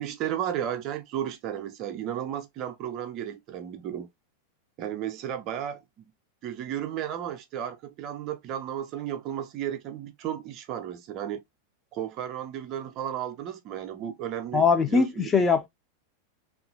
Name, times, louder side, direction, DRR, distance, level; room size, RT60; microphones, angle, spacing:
voice 1, 0.0-4.1 4.8-6.0 6.4-11.4 11.9-15.3, right 10 dB, 40° right, 0.5 m, -34 dB
voice 2, 14.5-15.7, left 5 dB, 15° left, 0.5 m, -21 dB
2.9 x 2.4 x 2.5 m
figure-of-eight pair, 90°, 0 cm